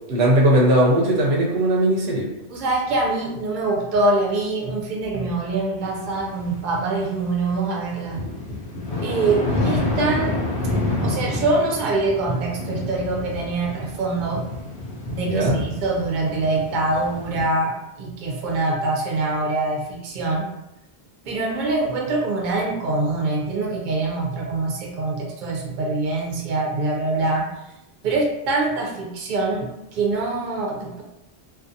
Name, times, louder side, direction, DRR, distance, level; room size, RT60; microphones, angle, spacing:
voice 1, 0.1-2.3 15.2-15.6, right 1 dB, 90° right, -3 dB, 0.9 m, -18 dB
voice 2, 2.5-8.2 9.0-10.4 11.0-14.5 15.1-20.5 21.3-27.5 28.0-31.0, right 2 dB, 55° right, -1 dB, 0.6 m, -24 dB
sound 1, 5.8-7.5 7.9-17.4, left 2 dB, 85° left, 1.0 m, -28 dB
2.6 x 2.4 x 2.5 m, 0.87 s
omnidirectional pair, 1.1 m